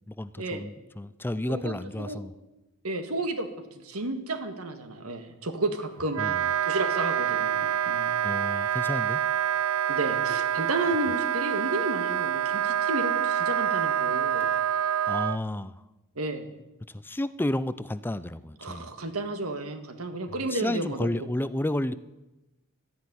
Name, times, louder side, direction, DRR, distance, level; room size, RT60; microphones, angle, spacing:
voice 1, 0.1-2.3 6.2-6.5 8.2-9.2 15.1-15.8 16.9-18.9 20.5-21.9, left 1 dB, 10° left, 15 dB, 0.4 m, -31 dB
voice 2, 1.5-2.2 2.8-3.5 3.7-6.2 6.7-8.2 9.9-14.5 16.2-16.5 18.6-21.3, right 2 dB, 90° right, 8 dB, 1.8 m, -32 dB
Wind instrument woodwind instrument, 6.1-15.4, right 9 dB, 70° right, 0.5 m, -27 dB
13.0 x 10.5 x 9.8 m, 1.0 s
head